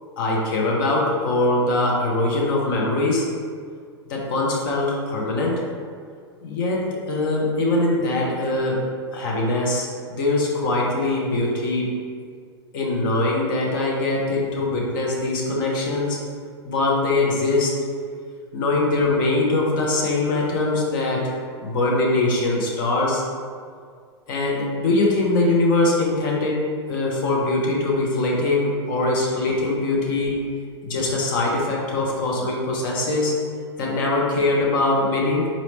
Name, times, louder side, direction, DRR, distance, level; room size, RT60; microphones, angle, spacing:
voice 1, 0.2-3.3 4.1-5.6 6.4-12.0 12.7-16.2 16.6-17.8 18.5-21.3 21.6-23.2 24.3-30.4 30.8-33.4 33.8-35.5, left 2 dB, 45° left, -2 dB, 0.9 m, -22 dB
4.1 x 3.0 x 3.2 m, 2.1 s
figure-of-eight pair, 100°, 15 cm